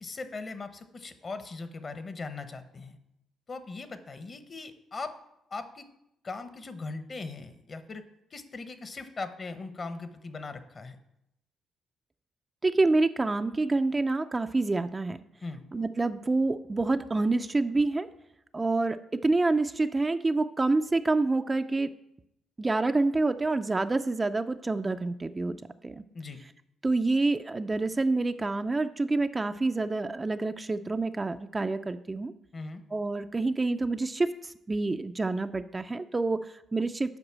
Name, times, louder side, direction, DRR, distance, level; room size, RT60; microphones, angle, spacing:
voice 1, 0.0-3.0 3.5-5.1 5.5-5.9 6.2-8.0 8.3-11.0 15.4-15.6 26.1-26.4 32.5-32.8, left 3 dB, 40° left, 10 dB, 1.0 m, -39 dB
voice 2, 12.6-15.2 15.7-18.1 18.5-21.9 22.6-25.6 25.8-26.0 26.8-32.3 32.9-37.2, right 3 dB, 20° right, 8 dB, 0.4 m, -27 dB
7.9 x 5.3 x 7.4 m, 0.82 s
cardioid pair, 90°, 0 cm